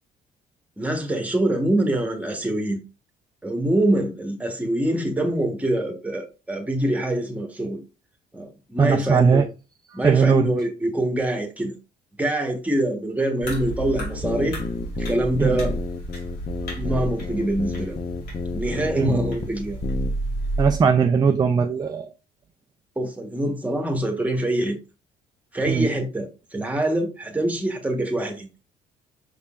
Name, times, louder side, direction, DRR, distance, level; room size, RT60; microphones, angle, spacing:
voice 1, 0.8-2.8 3.4-7.8 8.3-9.4 9.9-11.7 12.2-14.6 15.0-15.7 16.8-18.0 18.5-19.8 23.0-24.8 25.5-28.5, right 1 dB, 10° right, 1.1 m, -25 dB
voice 2, 8.8-9.5 9.9-10.5 15.4-15.6 19.0-19.2 20.6-22.1 25.7-25.9, right 6 dB, 25° right, 0.4 m, -19 dB
sound 1, 13.4-20.8, right 1 dB, 75° left, 2.3 m, -31 dB
sound 2, 13.5-19.5 19.8-20.1, left 5 dB, 30° left, 0.6 m, -31 dB
5.3 x 3.6 x 2.4 m
cardioid pair, 110°, 17 cm